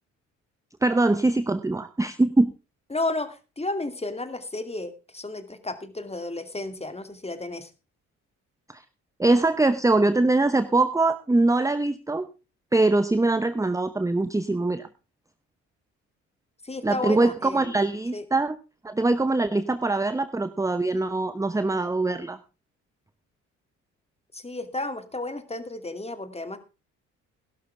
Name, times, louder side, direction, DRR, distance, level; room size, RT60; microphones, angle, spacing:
voice 1, 0.8-2.5 8.7-8.8 9.2-12.3 12.7-14.9 16.8-18.6 18.8-22.4, right 2 dB, 10° right, 12 dB, 0.9 m, -23 dB
voice 2, 2.9-7.7 16.6-17.7 18.1-18.2 24.3-26.6, left 2 dB, 15° left, 10 dB, 2.5 m, -32 dB
16.5 x 12.0 x 3.4 m, 0.31 s
hypercardioid pair, 55°, 37 cm